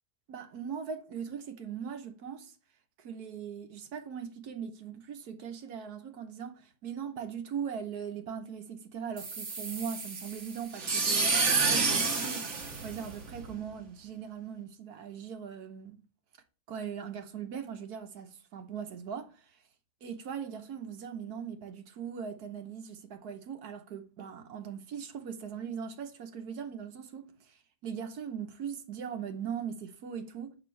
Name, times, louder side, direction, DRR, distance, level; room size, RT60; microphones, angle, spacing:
voice 1, 0.3-2.5 3.0-16.0 16.7-19.4 20.0-30.6, right 7 dB, 75° right, 1.4 m, -40 dB
sound 1, 9.2-13.5, right 4 dB, 50° right, 1.6 m, -29 dB
6.7 x 5.5 x 3.2 m
omnidirectional pair, 1.7 m